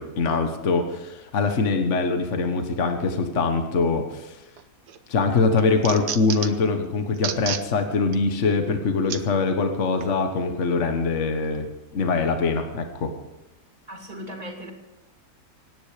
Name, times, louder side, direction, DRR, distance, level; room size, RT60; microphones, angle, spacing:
voice 1, 0.0-4.4 5.1-11.7 11.9-13.1, left 4 dB, 50° left, 6 dB, 1.6 m, -23 dB
sound 1, 4.6-5.0 5.4-6.7 7.1-7.7 8.1-8.2 9.1-9.2 10.0-10.1, right 9 dB, 80° right, 1.5 m, -31 dB
voice 2, 13.9-14.7, equal, 25° right, 2 dB, 2.8 m, -37 dB
25.5 x 10.0 x 5.0 m, 0.95 s
omnidirectional pair, 1.7 m